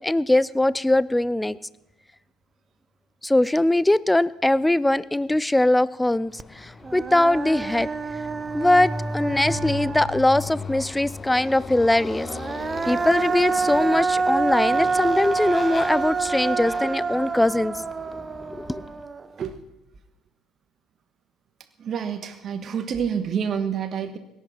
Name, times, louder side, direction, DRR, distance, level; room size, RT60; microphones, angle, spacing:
voice 1, 0.0-1.6 3.2-7.9 8.5-12.3 12.8-17.7 18.6-18.8, left 1 dB, 10° left, 20 dB, 0.6 m, -21 dB
Motorcycle, 6.3-19.0, left 3 dB, 25° left, 1.4 m, -37 dB
Human voice, 6.4-6.5 6.8-10.5 12.2-19.4, right 4 dB, 25° right, 0.8 m, -27 dB
voice 2, 21.8-24.2, right 7 dB, 45° right, 9 dB, 1.5 m, -28 dB
17.5 x 12.0 x 5.9 m, 0.92 s
figure-of-eight pair, 55°, 0 cm